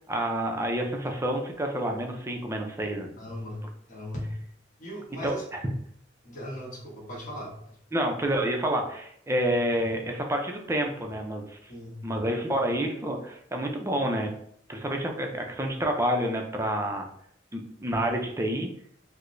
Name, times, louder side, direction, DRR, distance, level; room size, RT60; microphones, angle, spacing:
voice 1, 0.1-3.1 5.2-5.6 7.9-11.7 12.0-14.3 14.7-17.1 17.5-18.7, right 1 dB, 15° right, 2 dB, 0.5 m, -28 dB
voice 2, 3.2-4.3 4.8-5.4 6.2-7.8 11.7-12.1, equal, 45° left, -3 dB, 1.2 m, -38 dB
4.7 x 2.1 x 2.6 m, 0.67 s
head